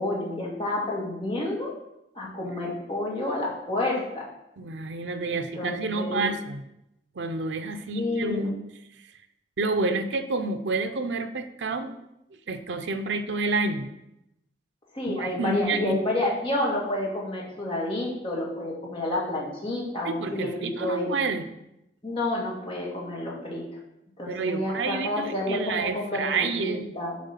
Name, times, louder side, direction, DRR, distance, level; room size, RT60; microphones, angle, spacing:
voice 1, 0.0-1.7 2.2-4.3 5.3-6.2 7.9-8.5 14.9-21.1 22.0-23.6 24.2-27.2, left 1 dB, 30° left, -4 dB, 1.9 m, -29 dB
voice 2, 4.6-6.6 7.2-8.5 9.6-12.0 12.5-13.9 15.1-16.0 20.0-21.4 24.3-27.0, right 3 dB, 80° right, 8 dB, 0.6 m, -29 dB
7.6 x 3.6 x 5.7 m, 0.85 s
head